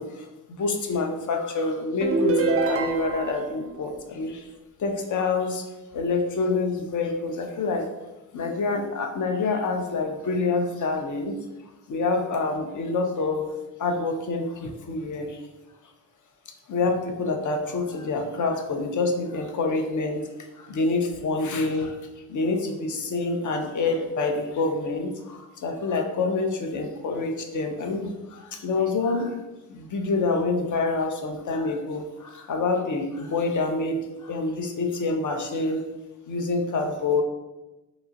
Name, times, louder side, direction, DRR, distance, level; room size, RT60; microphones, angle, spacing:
voice 1, 0.0-4.4 4.8-5.6 5.9-7.9 8.3-11.4 11.9-13.5 13.8-15.4 16.7-20.3 20.6-21.9 22.3-29.4 29.7-35.8 36.3-37.2, left 3 dB, 40° left, 3 dB, 0.6 m, -27 dB
sound 1, 2.0-3.5, right 3 dB, 30° right, 0.4 m, -24 dB
3.0 x 2.2 x 2.6 m, 1.0 s
hypercardioid pair, 45°, 49 cm